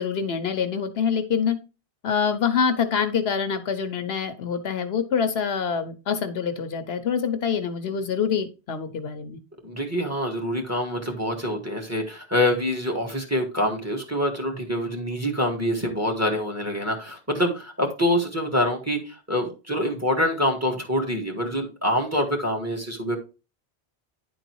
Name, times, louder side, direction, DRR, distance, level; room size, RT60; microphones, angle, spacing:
voice 1, 0.0-1.6 2.0-9.4, left 6 dB, 70° left, 9 dB, 1.0 m, -25 dB
voice 2, 9.6-23.2, equal, 15° right, 1 dB, 1.8 m, -25 dB
10.0 x 3.9 x 4.5 m, 0.31 s
omnidirectional pair, 1.1 m